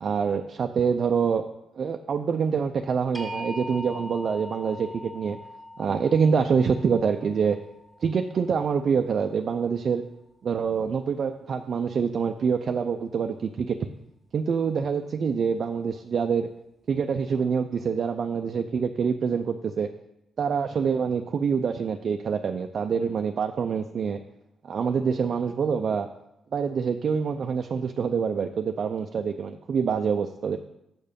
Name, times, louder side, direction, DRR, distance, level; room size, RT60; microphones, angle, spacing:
voice 1, 0.0-1.4 1.8-5.4 5.8-7.6 8.0-10.0 10.4-13.9 14.3-16.5 16.9-19.9 20.4-24.2 24.6-26.1 26.5-30.6, right 6 dB, 60° right, 6 dB, 0.4 m, -26 dB
sound 1, 3.1-9.1, left 1 dB, ahead, 1.9 m, -41 dB
6.7 x 6.1 x 5.2 m, 0.88 s
cardioid pair, 75°, 0 cm